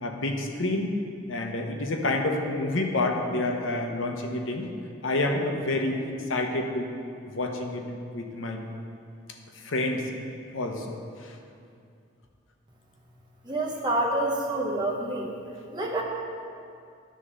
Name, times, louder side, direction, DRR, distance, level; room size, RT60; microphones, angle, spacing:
voice 1, 0.0-0.9 1.3-4.7 5.0-6.9 7.3-7.8 8.1-8.6 9.6-10.1 10.5-11.3, left 2 dB, 80° left, 3 dB, 0.9 m, -28 dB
voice 2, 13.4-15.3 15.7-16.0, right 1 dB, 20° right, -1 dB, 0.9 m, -27 dB
10.5 x 3.7 x 6.7 m, 2.4 s
head